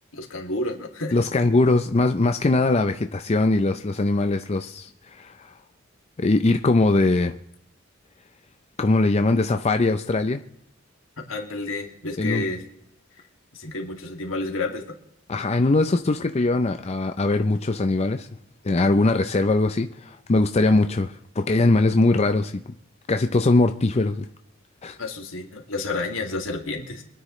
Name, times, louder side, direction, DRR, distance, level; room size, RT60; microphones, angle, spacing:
voice 1, 0.1-1.2 11.2-12.6 13.5-15.0 25.0-27.0, left 2 dB, 80° left, 2.4 m, -30 dB
voice 2, 1.1-5.5 6.2-7.3 8.8-10.4 12.2-12.4 15.3-18.3 18.6-22.6 23.1-24.3 24.8-25.0, left 2 dB, 30° left, 0.5 m, -21 dB
26.0 x 9.7 x 3.2 m
head